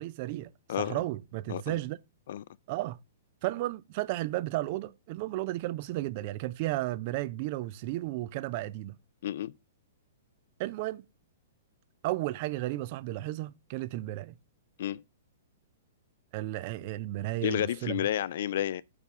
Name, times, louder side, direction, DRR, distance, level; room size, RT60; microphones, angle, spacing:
voice 1, 0.0-0.5 0.8-2.0 2.7-3.0 3.4-8.9 10.6-11.0 12.0-14.3 16.3-18.0, right 16 dB, 45° right, 0.3 m, -33 dB
voice 2, 0.7-1.0 1.5-1.8 2.3-2.4 9.2-9.5 14.8-15.0 17.4-18.8, left 11 dB, 60° left, 0.3 m, -31 dB
5.3 x 4.9 x 4.6 m
figure-of-eight pair, 115°, 0 cm